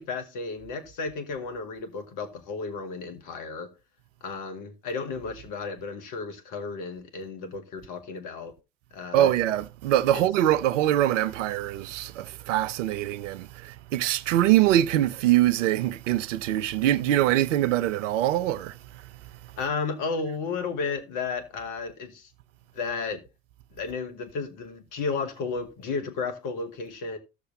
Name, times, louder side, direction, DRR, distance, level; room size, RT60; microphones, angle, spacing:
voice 1, 0.0-3.7 4.2-8.5 8.9-9.3 10.1-10.2 19.6-22.3 22.7-23.2 23.7-27.2, left 4 dB, 55° left, 1.9 m, -33 dB
voice 2, 9.1-18.7, right 13 dB, 75° right, 0.6 m, -23 dB
16.5 x 6.6 x 2.7 m
hypercardioid pair, 70°, 38 cm